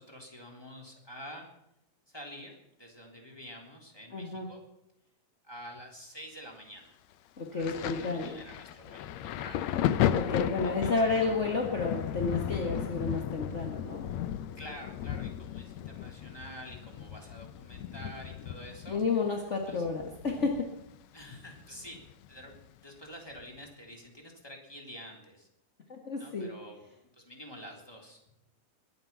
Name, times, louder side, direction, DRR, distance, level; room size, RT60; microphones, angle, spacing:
voice 1, 0.0-1.5 2.1-4.6 5.4-7.0 7.5-9.7 10.6-11.2 14.5-19.0 19.7-19.8 21.1-22.0 22.3-25.5 26.2-26.8 27.1-28.2, equal, 5° left, 1 dB, 3.1 m, -48 dB
voice 2, 4.1-4.5 7.4-8.3 10.1-14.0 18.9-20.6 26.0-26.5, left 3 dB, 35° left, 1 dB, 1.3 m, -31 dB
Thunder, 7.6-21.0 21.2-22.6 23.4-23.6, left 11 dB, 75° left, 1.8 m, -35 dB
22.0 x 9.5 x 5.8 m, 0.85 s
omnidirectional pair, 3.7 m